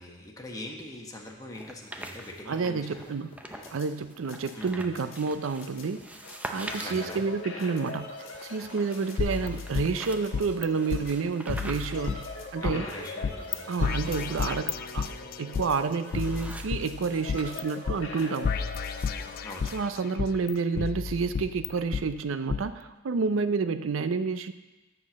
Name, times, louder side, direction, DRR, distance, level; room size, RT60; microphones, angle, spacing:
voice 1, 0.0-3.1 3.5-3.7 4.5-4.8 6.7-7.2 12.6-13.7 19.4-19.7, left 1 dB, 20° left, -1 dB, 1.2 m, -41 dB
sound 1, 1.5-3.8 4.1-17.6 17.9-19.7, right 1 dB, 5° right, 0.5 m, -45 dB
voice 2, 2.5-3.3 3.7-6.0 6.5-8.1 8.4-12.2 12.5-12.9 13.7-18.5 19.7-24.5, right 4 dB, 75° right, 11 dB, 0.5 m, -29 dB
sound 2, 3.3-19.8, left 2 dB, 75° left, 1.3 m, -43 dB
sound 3, 9.2-10.7 10.9-11.0 11.5-12.8 13.2-13.6 13.8-15.7 16.1-17.6 17.9-18.0 18.4-19.8 20.2-22.0 22.5-22.6, left 6 dB, 45° left, 0.3 m, -31 dB
7.5 x 6.0 x 7.1 m, 1.1 s
head